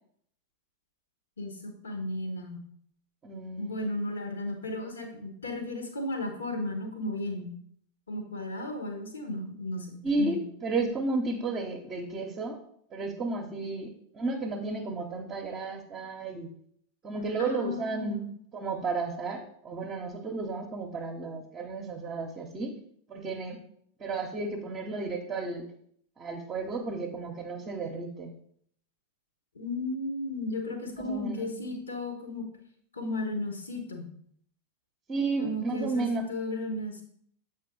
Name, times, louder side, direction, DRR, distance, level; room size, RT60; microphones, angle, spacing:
voice 1, 1.4-2.6 3.6-7.5 8.1-10.4 17.4-18.3 29.5-32.4 32.9-34.1 35.4-37.0, left 1 dB, 70° left, 4 dB, 1.2 m, -34 dB
voice 2, 3.2-3.9 10.0-12.6 12.9-16.5 17.0-18.2 18.5-22.8 23.1-23.6 24.0-25.7 26.2-28.3 30.9-31.6 35.1-36.2, right 3 dB, 25° right, 1 dB, 0.7 m, -33 dB
7.4 x 4.3 x 3.8 m, 0.65 s
figure-of-eight pair, 90°, 0 cm